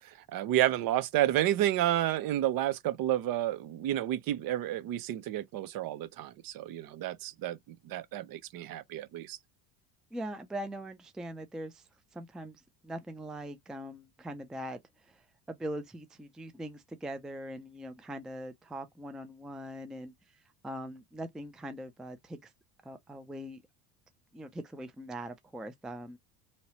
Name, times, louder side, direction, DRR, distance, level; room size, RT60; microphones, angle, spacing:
voice 1, 0.3-7.6 7.8-9.4, right 13 dB, 55° right, 0.7 m, -30 dB
voice 2, 10.1-22.5 22.8-23.6 24.3-26.2, right 1 dB, ahead, 0.4 m, -42 dB
3.0 x 2.8 x 2.9 m
cardioid pair, 115°, 41 cm